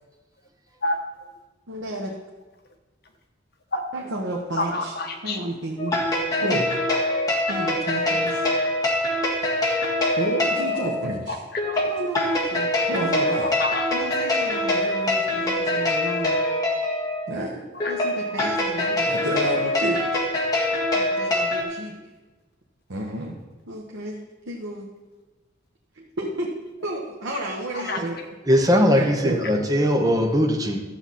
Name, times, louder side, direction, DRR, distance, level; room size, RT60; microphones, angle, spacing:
voice 1, 1.7-2.1 3.9-4.9 5.2-5.9 6.4-6.7 7.5-8.5 10.2-11.4 11.8-13.5 13.9-16.4 17.3-17.6 17.9-20.0 20.9-21.9 22.9-23.4 23.7-24.2 24.4-24.9 25.9-26.5 26.8-28.1 28.9-29.4, right 1 dB, 75° right, -2 dB, 1.2 m, -31 dB
voice 2, 4.6-5.4 9.8-9.9 11.3-11.9 13.4-13.9 17.7-17.9 27.7-28.2, left 2 dB, 50° left, 3 dB, 1.3 m, -29 dB
sound 1, 5.8-21.6, left 1 dB, 20° left, 1.7 m, -24 dB
voice 3, 28.5-30.8, equal, 20° right, 3 dB, 0.9 m, -20 dB
12.5 x 7.9 x 4.2 m, 1.2 s
head